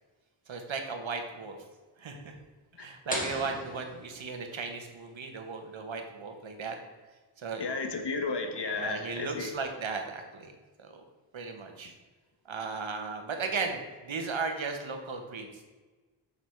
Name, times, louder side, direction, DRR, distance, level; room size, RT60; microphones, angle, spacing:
voice 1, 0.5-1.6 2.0-2.4 2.8-6.8 7.4-7.7 8.7-10.5 10.8-11.0 11.3-11.9 12.4-15.6, right 4 dB, 75° right, 4 dB, 1.5 m, -36 dB
sound 1, 3.1-4.8, left 1 dB, 15° left, 2.0 m, -38 dB
voice 2, 7.6-9.5, left 3 dB, 60° left, 5 dB, 1.4 m, -33 dB
6.9 x 6.9 x 4.7 m, 1.3 s
wide cardioid pair, 80°, 47 cm